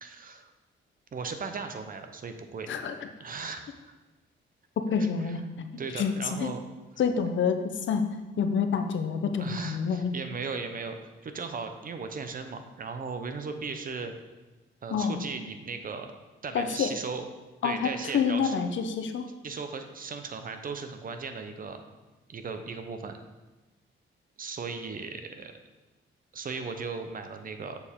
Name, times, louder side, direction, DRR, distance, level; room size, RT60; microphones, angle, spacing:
voice 1, 0.0-0.4 1.1-2.7 3.2-3.9 5.0-5.3 5.8-6.6 9.4-14.1 14.8-16.1 16.4-17.2 17.6-18.6 19.4-21.8 22.3-23.2 24.4-25.5 26.3-27.8, right 4 dB, 45° right, 7 dB, 0.7 m, -37 dB
voice 2, 4.9-5.7 5.9-6.5 7.0-8.0 8.4-10.1 14.9-15.2 16.5-16.9 17.6-19.3, left 6 dB, 65° left, 7 dB, 0.7 m, -28 dB
6.9 x 6.9 x 3.6 m, 1.1 s
cardioid pair, 110°, 21 cm